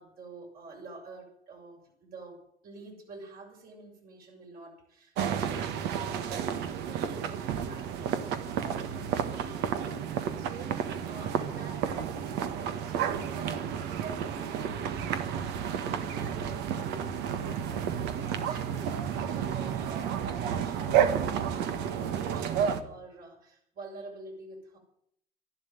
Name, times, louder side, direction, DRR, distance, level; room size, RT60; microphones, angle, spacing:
voice 1, 0.0-15.5 15.9-24.8, right 2 dB, 60° right, -1 dB, 6.7 m, -48 dB
sound 1, 5.2-22.8, right 8 dB, 90° right, 1.5 m, -31 dB
12.0 x 11.5 x 9.3 m, 0.69 s
cardioid pair, 110°, 17 cm